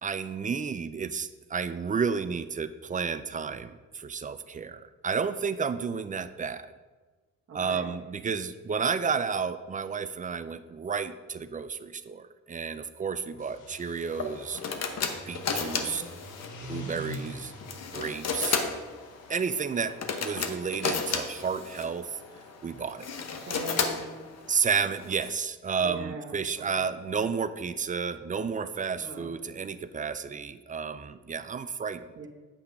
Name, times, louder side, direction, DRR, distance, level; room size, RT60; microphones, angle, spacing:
voice 1, 0.0-6.7 7.5-14.6 15.3-16.0 16.6-17.5 17.9-18.6 19.3-19.9 20.2-22.2 22.6-23.1 24.5-32.0, right 6 dB, 25° right, 12 dB, 0.5 m, -31 dB
voice 2, 7.5-7.9 15.7-16.0 16.7-17.0 23.4-24.3 25.8-26.9 28.9-29.3 32.2-32.3, right 3 dB, 45° right, -1 dB, 1.3 m, -42 dB
sound 1, 13.3-19.6, left 1 dB, 80° left, 1.3 m, -45 dB
sound 2, 14.1-25.3, left 5 dB, 60° left, 1.0 m, -34 dB
8.5 x 5.7 x 5.3 m, 1.3 s
cardioid pair, 90°, 30 cm